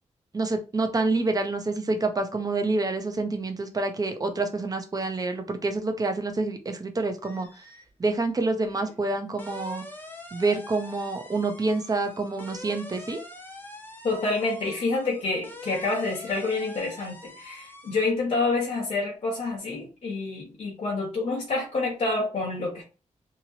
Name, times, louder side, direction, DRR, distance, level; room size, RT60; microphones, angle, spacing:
voice 1, 0.3-7.6 8.0-9.8 10.3-13.2, right 3 dB, 30° right, 0.5 m, -27 dB
sound 1, 7.2-7.9 8.2-18.1, left 2 dB, 15° left, 0.6 m, -45 dB
voice 2, 14.0-22.8, left 3 dB, 50° left, 0.9 m, -28 dB
2.9 x 2.8 x 2.7 m
wide cardioid pair, 170°, 13 cm